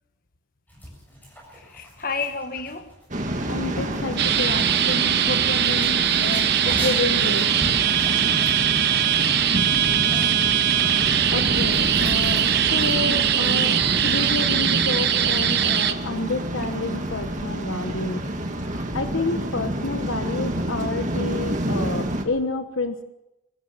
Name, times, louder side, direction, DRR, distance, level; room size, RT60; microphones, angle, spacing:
sound 1, 0.7-14.7, equal, 10° left, 7.9 m, -41 dB
voice 1, 1.5-2.9 9.9-10.2, left 4 dB, 45° left, 1.7 m, -33 dB
Waves surf, 3.1-22.2, right 1 dB, 35° right, 2.1 m, -28 dB
voice 2, 3.5-7.5 11.0-18.2 18.6-23.0, left 3 dB, 70° left, 1.3 m, -30 dB
sound 2, 4.2-15.9, right 10 dB, 55° right, 1.1 m, -21 dB
23.5 x 15.0 x 7.3 m
head